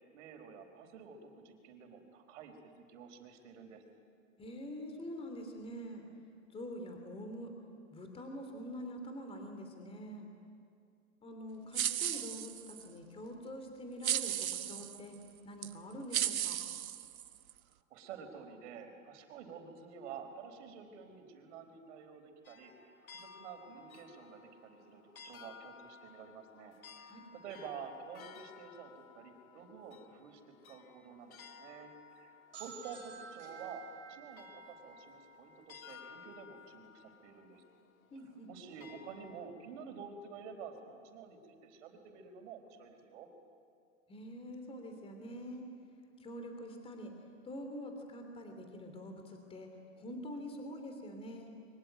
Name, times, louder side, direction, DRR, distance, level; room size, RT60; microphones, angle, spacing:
voice 1, 0.1-3.8 17.9-37.6 38.5-43.3, right 6 dB, 60° right, 5 dB, 4.5 m, -50 dB
voice 2, 4.4-6.0 6.5-7.5 7.9-10.3 11.2-15.2 15.4-16.6 27.1-27.2 38.1-38.5 44.1-45.6 46.2-47.1 47.4-51.5, equal, 15° left, 4 dB, 3.0 m, -45 dB
sound 1, 11.7-12.9 14.0-15.0 15.6-15.7 16.1-17.5, right 11 dB, 85° right, 1.3 m, -35 dB
sound 2, 22.4-39.4, left 6 dB, 90° left, 2.1 m, -56 dB
sound 3, 32.5-36.2, right 6 dB, 30° right, 5.0 m, -53 dB
26.5 x 23.5 x 9.3 m, 2.3 s
hypercardioid pair, 135°, 41 cm